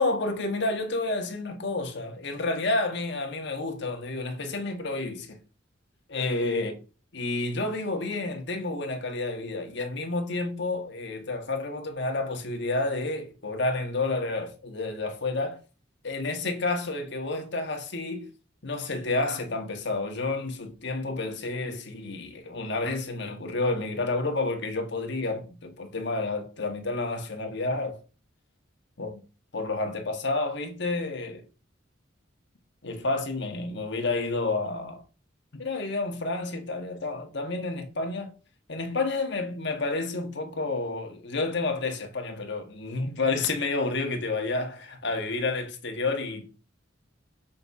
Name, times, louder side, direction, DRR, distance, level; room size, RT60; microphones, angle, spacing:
voice 1, 0.0-5.4 6.1-6.7 7.1-15.6 16.0-18.3 18.6-28.0 29.0-29.2 29.5-31.4 32.8-35.0 35.5-38.3 38.7-46.5, left 3 dB, 60° left, 1.6 m, -30 dB
6.4 x 4.2 x 4.8 m
head